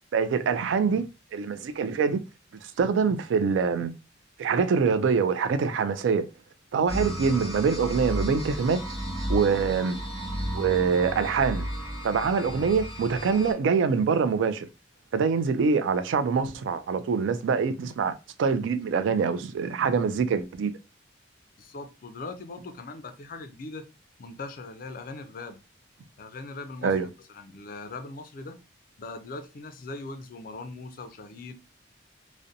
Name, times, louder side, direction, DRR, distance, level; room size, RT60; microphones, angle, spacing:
voice 1, 0.1-1.1 1.3-2.2 2.8-3.9 4.4-6.3 6.7-8.8 9.3-10.0 10.5-11.6 12.0-14.7 15.1-18.1 18.4-20.7 26.8-27.1, right 5 dB, 80° right, 0.3 m, -24 dB
sound 1, 6.9-13.5, equal, 20° right, 1.1 m, -33 dB
voice 2, 21.6-23.9 24.2-25.6 26.2-28.6 29.0-31.5, left 3 dB, 50° left, 0.4 m, -40 dB
2.5 x 2.1 x 2.6 m
head